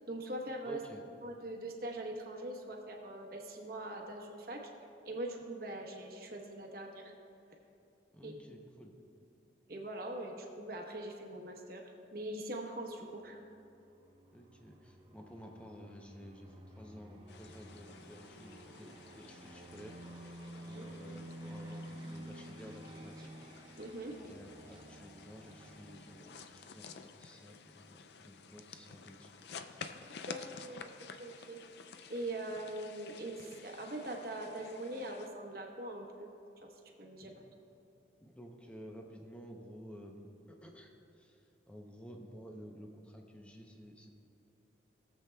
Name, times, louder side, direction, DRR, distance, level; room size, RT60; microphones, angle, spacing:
voice 1, 0.1-0.8 1.2-4.7 5.0-7.1 8.2-8.3 9.7-13.4 20.7-20.8 23.8-24.1 30.3-30.9 31.2-31.6 32.1-36.3 36.6-36.7 37.0-37.4, right 1 dB, 50° right, 1 dB, 1.0 m, -42 dB
voice 2, 0.6-1.0 8.1-8.9 14.3-23.3 24.2-29.5 37.2-37.4 38.2-44.1, equal, 5° left, 1 dB, 0.6 m, -52 dB
sound 1, 13.1-26.5, right 1 dB, 25° right, 0.8 m, -51 dB
sound 2, 17.3-35.3, left 5 dB, 60° left, 0.4 m, -52 dB
18.0 x 7.4 x 2.2 m, 2.8 s
head